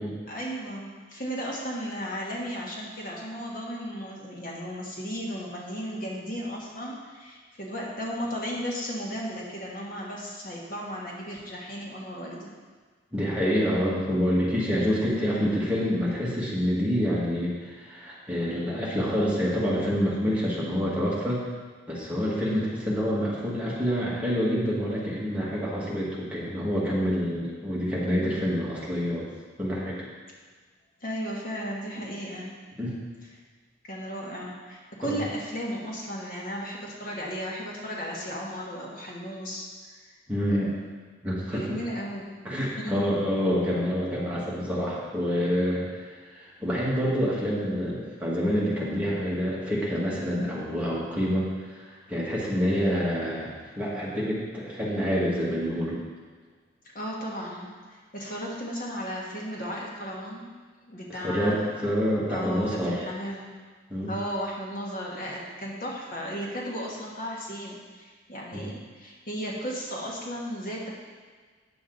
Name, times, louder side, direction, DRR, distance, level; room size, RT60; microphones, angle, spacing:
voice 1, 0.3-12.5 22.4-22.7 31.0-32.5 33.9-39.7 39.9-40.1 40.5-40.7 41.5-42.4 42.8-43.1 56.9-60.5 60.9-61.8 62.3-63.5 64.0-70.9, equal, 50° left, -3 dB, 1.4 m, -35 dB
voice 2, 13.1-21.4 21.9-29.3 29.6-30.0 32.8-32.9 35.0-35.2 40.3-40.7 41.2-41.8 42.4-56.0 61.1-63.0 63.9-64.2 68.5-68.7, equal, 5° right, -7 dB, 1.7 m, -27 dB
9.2 x 6.8 x 3.9 m, 1.5 s
head